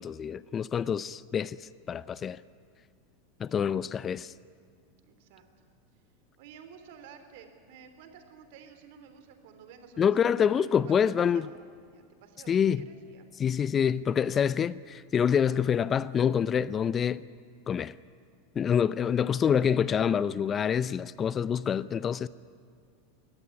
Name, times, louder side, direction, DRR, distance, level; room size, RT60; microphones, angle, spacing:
voice 1, 0.0-1.6 1.9-2.4 3.4-4.3 10.0-11.5 12.5-12.9 13.4-17.2 17.7-17.9 18.6-22.3, left 8 dB, 30° left, 0.6 m, -26 dB
voice 2, 5.0-5.4 6.4-10.9 11.3-11.5 11.9-13.3, right 7 dB, 60° right, 3.3 m, -52 dB
23.0 x 18.0 x 9.9 m
hypercardioid pair, 90°, 0 cm